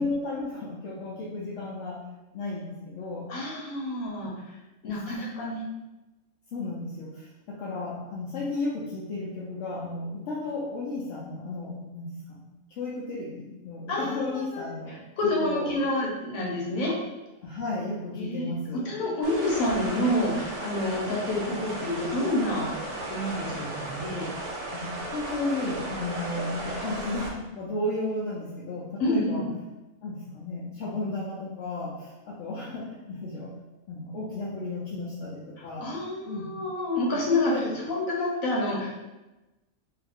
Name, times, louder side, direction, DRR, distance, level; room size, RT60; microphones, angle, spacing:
voice 1, 0.0-2.0 2.3-3.3 4.8-5.0 6.5-12.4 12.8-15.0 15.4-15.7 17.4-18.8 24.7-29.4 30.0-33.5 33.9-35.9 36.2-36.5 37.1-37.7, left 2 dB, 70° left, -6 dB, 0.9 m, -33 dB
voice 2, 3.3-4.3 4.8-5.6 13.9-17.0 18.1-18.6 18.8-22.7 23.1-24.3 29.0-29.5 35.6-38.9, left 1 dB, 85° left, -3 dB, 1.3 m, -28 dB
sound 1, 19.2-27.3, right 2 dB, 65° right, 0.9 m, -35 dB
2.7 x 2.4 x 3.4 m, 1.0 s
omnidirectional pair, 1.4 m